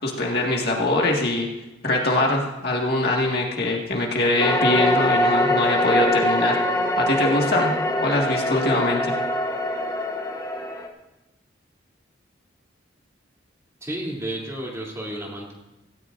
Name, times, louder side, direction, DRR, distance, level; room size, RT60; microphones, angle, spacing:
voice 1, 0.0-1.5 1.8-6.6 7.0-7.7 8.0-9.1, left 2 dB, 55° left, -1 dB, 1.9 m, -22 dB
sound 1, 4.4-10.9, left 1 dB, 20° left, 1.1 m, -23 dB
voice 2, 13.8-15.5, right 1 dB, 15° right, -3 dB, 3.0 m, -32 dB
17.0 x 17.0 x 2.6 m, 1.0 s
head